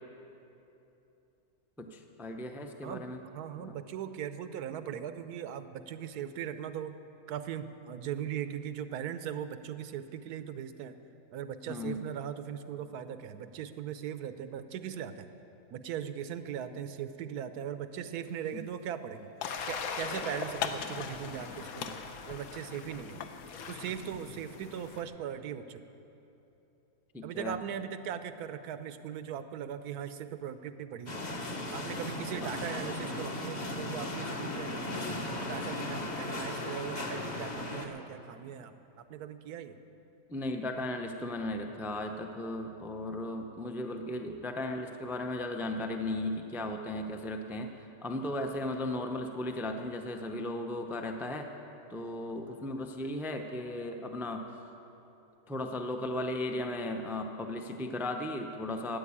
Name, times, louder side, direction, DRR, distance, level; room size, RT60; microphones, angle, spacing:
voice 1, 1.8-3.2 3.6-3.7 11.7-12.1 18.5-18.6 27.1-27.6 40.3-47.7 48.0-51.5 51.9-54.5 55.5-59.0, left 1 dB, 5° right, 4 dB, 0.3 m, -36 dB
voice 2, 2.8-7.0 7.3-11.0 11.3-15.3 15.7-19.3 19.7-23.2 23.7-25.8 27.2-31.2 31.7-35.0 35.5-38.7 39.1-39.8, right 9 dB, 80° right, 11 dB, 1.2 m, -39 dB
sound 1, 18.2-18.5 18.8-20.1 20.6-21.5 21.8-23.4, left 7 dB, 90° left, 1.4 m, -40 dB
sound 2, 19.4-25.0, left 5 dB, 65° left, 1.3 m, -41 dB
sound 3, 31.1-37.9, left 1 dB, 30° left, 1.1 m, -36 dB
13.5 x 9.3 x 8.5 m, 3.0 s
omnidirectional pair, 1.6 m